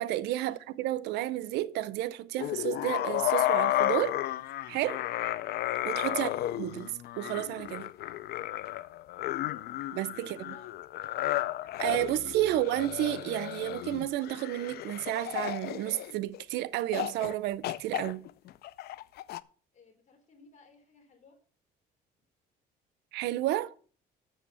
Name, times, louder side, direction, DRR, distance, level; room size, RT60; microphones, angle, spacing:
voice 1, 0.0-4.2 4.7-5.0 5.8-6.3 6.6-7.9 10.0-10.4 11.8-18.2 23.1-23.7, right 15 dB, 85° right, 0.7 m, -31 dB
sound 1, 2.4-16.4 16.9-17.3 17.6-19.4, left 14 dB, 70° left, 0.5 m, -33 dB
voice 2, 9.2-9.6 10.3-10.7 19.7-21.4, left 4 dB, 45° left, 4.0 m, -55 dB
7.4 x 7.0 x 7.0 m
cardioid pair, 110°, 17 cm